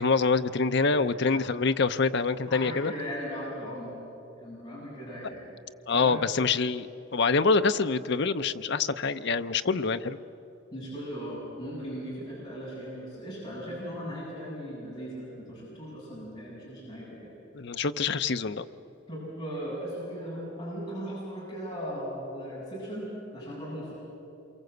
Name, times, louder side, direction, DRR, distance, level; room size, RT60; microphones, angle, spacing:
voice 1, 0.0-2.9 5.9-6.9 7.1-10.2 17.5-18.6, left 4 dB, 60° left, 10 dB, 0.7 m, -25 dB
voice 2, 0.7-1.5 2.5-4.0 4.4-5.4 5.9-6.2 6.6-6.7 10.7-17.3 19.1-23.9, equal, 20° left, -7 dB, 7.5 m, -38 dB
27.5 x 23.5 x 8.0 m, 3.0 s
head